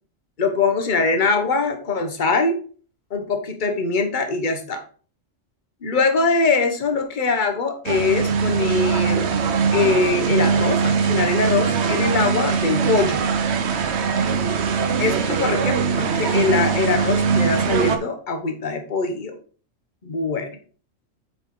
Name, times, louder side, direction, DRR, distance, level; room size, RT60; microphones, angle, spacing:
voice 1, 0.4-2.6 3.1-4.8 5.8-9.3 9.7-13.2 15.0-19.3 20.0-20.5, left 4 dB, 40° left, 5 dB, 1.2 m, -22 dB
sound 1, 7.8-18.0, right 6 dB, 60° right, 1.0 m, -21 dB
7.7 x 4.8 x 3.8 m, 0.41 s
omnidirectional pair, 1.4 m